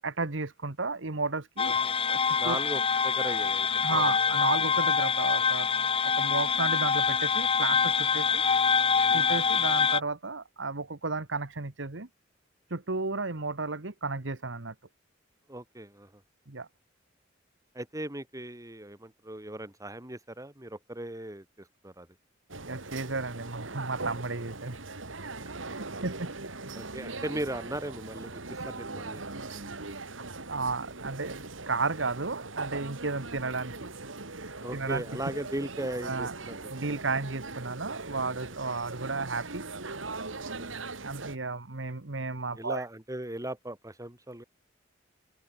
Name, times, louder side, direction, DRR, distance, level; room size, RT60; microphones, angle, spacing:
voice 1, 0.0-1.8 2.1-2.6 3.8-5.7 6.1-8.4 9.1-12.1 12.7-14.7 16.5-16.7 22.6-24.7 25.7-26.3 30.5-31.4 31.7-34.1 34.7-35.0 36.0-36.3 36.7-39.7 41.0-42.8, right 3 dB, 70° right, 1.6 m, -33 dB
sound 1, 1.6-10.0, left 6 dB, 30° left, 0.9 m, -25 dB
voice 2, 1.7-2.0 2.4-4.0 8.2-8.3 9.1-9.2 15.5-16.2 17.7-22.1 25.4-25.5 26.7-29.8 34.6-37.0 40.5-40.8 42.5-44.4, right 1 dB, 15° right, 3.3 m, -38 dB
sound 2, 22.5-41.4, right 3 dB, 90° right, 3.1 m, -40 dB
open air
head